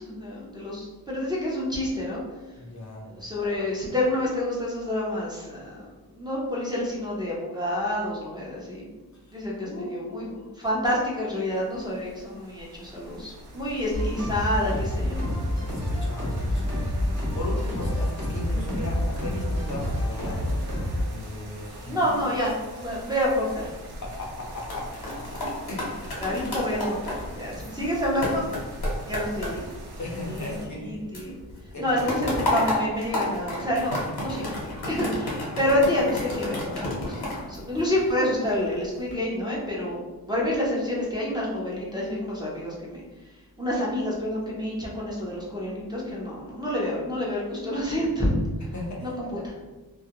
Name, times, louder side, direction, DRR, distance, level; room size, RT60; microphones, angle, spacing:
voice 1, 0.0-2.2 3.0-8.9 9.3-10.3 10.6-15.4 21.8-23.7 26.2-28.4 29.1-29.6 30.3-31.3 31.8-33.9 34.2-34.6 34.8-40.0 40.3-43.0 43.6-48.3 49.0-49.5, left 1 dB, 10° right, -5 dB, 0.6 m, -28 dB
voice 2, 2.6-3.0 9.6-10.4 15.7-16.8 17.3-20.6 21.1-22.0 24.0-24.9 25.1-25.4 25.7-26.2 30.0-31.0 31.7-32.1 48.7-49.4, left 2 dB, 50° left, -3 dB, 0.6 m, -36 dB
sound 1, 11.2-30.7, equal, 85° right, 0.6 m, -41 dB
sound 2, 13.9-21.1, left 1 dB, 45° right, 0.9 m, -28 dB
sound 3, 24.6-30.9 31.1-38.3 38.8-39.1, left 1 dB, 80° left, 0.9 m, -32 dB
2.3 x 2.1 x 2.8 m, 1.2 s
wide cardioid pair, 85°, 38 cm